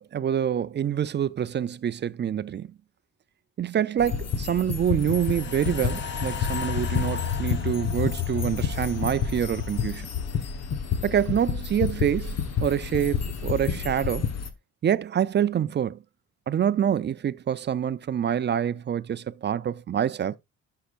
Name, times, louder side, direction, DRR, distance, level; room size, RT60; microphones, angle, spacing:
voice 1, 0.0-2.7 3.6-10.1 11.0-14.3 14.8-16.0 16.5-20.4, right 9 dB, 35° right, 0.4 m, -26 dB
sound 1, 4.0-14.5, left 6 dB, 55° left, 1.3 m, -30 dB
sound 2, 5.0-11.4 11.8-11.9, left 8 dB, 40° left, 1.1 m, -34 dB
11.5 x 5.7 x 2.5 m
cardioid pair, 90°, 30 cm